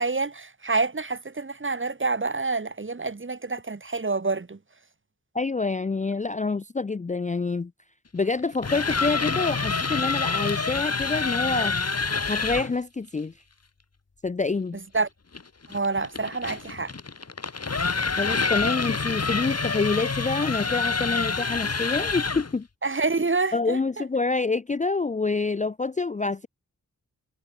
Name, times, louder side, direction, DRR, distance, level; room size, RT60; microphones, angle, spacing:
voice 1, 0.0-4.6 14.9-15.1 15.7-16.9 22.8-23.8, right 3 dB, 35° right, 1.5 m, -27 dB
voice 2, 5.3-7.7 8.1-11.8 12.3-13.3 14.2-14.8 18.2-22.7 23.5-26.5, left 3 dB, 20° left, 0.4 m, -27 dB
sound 1, 8.4-12.7 15.3-22.6, left 4 dB, 45° left, 1.8 m, -27 dB
wide cardioid pair, 60°, 35 cm